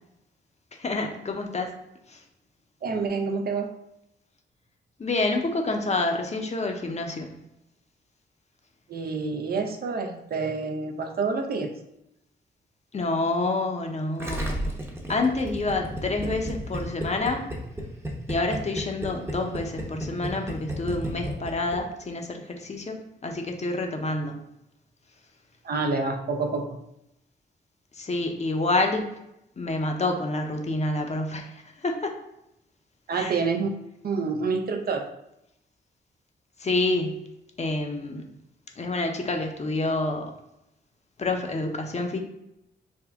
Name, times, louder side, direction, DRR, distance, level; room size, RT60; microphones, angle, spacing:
voice 1, 0.8-1.7 5.0-7.3 12.9-14.6 15.1-17.5 18.3-24.3 28.0-29.1 29.6-31.5 31.8-32.1 33.1-33.3 36.6-37.2 37.6-38.3 38.8-40.3 41.2-42.2, left 2 dB, 35° left, 3 dB, 0.6 m, -28 dB
voice 2, 2.8-3.8 8.9-11.7 25.6-26.8 33.1-33.7 34.0-35.1, right 4 dB, 55° right, 5 dB, 0.5 m, -28 dB
Gurgling, 14.2-21.8 22.0-22.1, equal, 15° right, 0.7 m, -32 dB
3.5 x 2.1 x 3.4 m, 0.84 s
cardioid pair, 60°, 19 cm